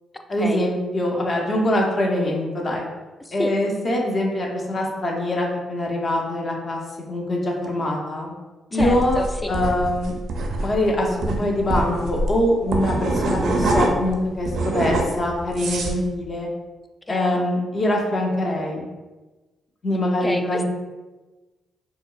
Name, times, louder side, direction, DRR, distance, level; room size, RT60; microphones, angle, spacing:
voice 1, 0.3-2.9 3.3-6.8 7.1-8.3 8.7-9.2 9.5-10.1 10.6-16.5 17.1-18.9 19.8-20.6, left 1 dB, 45° left, -1 dB, 0.9 m, -23 dB
voice 2, 3.2-3.5 8.7-9.6 17.1-17.4 20.2-20.6, left 1 dB, 15° left, 6 dB, 0.4 m, -29 dB
sound 1, 8.8-14.1 14.4-16.0, right 2 dB, 75° right, 0.4 m, -24 dB
4.2 x 2.2 x 2.5 m, 1.2 s
cardioid pair, 70°, 0 cm